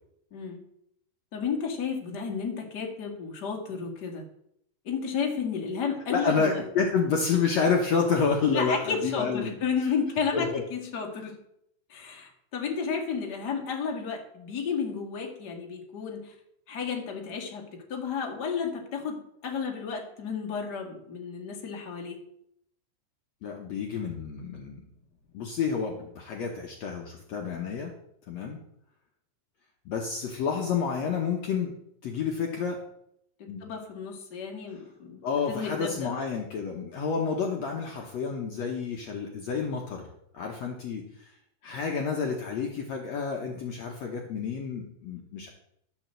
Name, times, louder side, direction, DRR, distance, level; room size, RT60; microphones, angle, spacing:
voice 1, 0.3-0.6 1.3-4.2 4.8-6.6 8.5-11.4 11.9-16.3 16.7-22.2 33.6-35.2 35.5-36.1, left 6 dB, 40° left, 1 dB, 1.4 m, -32 dB
voice 2, 6.1-9.6 10.3-10.6 23.4-24.8 25.3-27.9 28.3-28.6 29.8-31.7 32.0-32.8 33.5-33.6 35.2-40.1 40.3-41.3 41.6-45.5, left 5 dB, 80° left, 0 dB, 1.5 m, -29 dB
12.5 x 5.5 x 7.6 m, 0.75 s
omnidirectional pair, 4.8 m